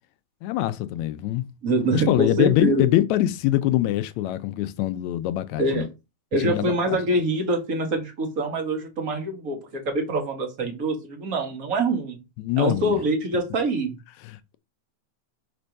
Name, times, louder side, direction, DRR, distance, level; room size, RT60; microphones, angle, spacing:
voice 1, 0.4-1.5 1.9-5.9 6.4-7.0 12.4-12.9 14.2-14.6, left 14 dB, 80° left, 1.8 m, -24 dB
voice 2, 1.6-2.8 5.6-5.9 6.3-12.2 12.6-14.0, right 2 dB, 35° right, 1.7 m, -25 dB
5.1 x 4.4 x 5.3 m
omnidirectional pair, 3.4 m